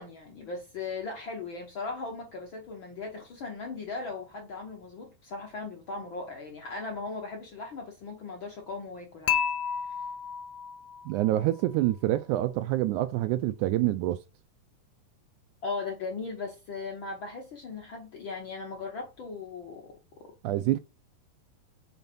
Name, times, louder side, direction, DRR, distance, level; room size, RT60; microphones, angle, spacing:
voice 1, 0.0-9.4 15.6-19.9, left 4 dB, 55° left, 1.4 m, -38 dB
Dishes pots and pans / Chink clink, 9.3-11.4, left 9 dB, 70° left, 1.6 m, -31 dB
voice 2, 11.1-14.2 20.4-20.8, right 15 dB, 80° right, 1.9 m, -26 dB
5.9 x 4.0 x 5.2 m
omnidirectional pair, 3.8 m